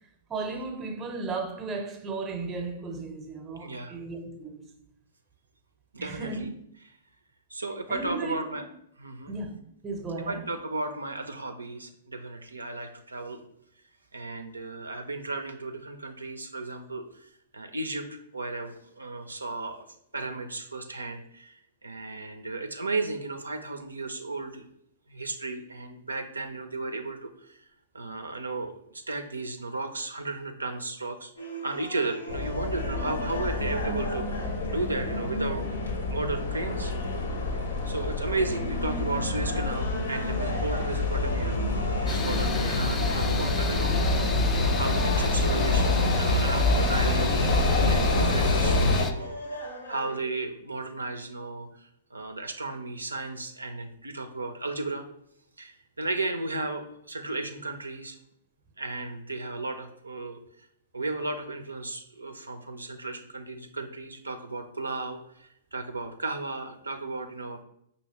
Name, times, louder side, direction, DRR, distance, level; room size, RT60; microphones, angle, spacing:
voice 1, 0.3-4.7 6.0-6.5 7.9-8.6 9.3-9.6 9.8-10.4, right 3 dB, 20° right, 0.6 m, -35 dB
voice 2, 3.6-4.0 5.9-6.5 7.5-8.6 9.0-9.3 10.3-13.4 14.1-19.9 20.1-24.6 25.1-27.7 27.9-35.6 36.1-36.9 37.8-41.6 42.0-49.4 49.9-55.1 55.6-58.2 58.8-60.4 60.9-67.6, right 3 dB, 85° right, 0.4 m, -34 dB
sound 1, 31.4-50.2, equal, 85° left, 1.3 m, -39 dB
sound 2, 32.3-49.0, left 2 dB, 60° left, 0.7 m, -26 dB
sound 3, 42.1-49.1, left 4 dB, 20° left, 0.3 m, -34 dB
5.4 x 2.8 x 2.9 m
figure-of-eight pair, 110°, 0 cm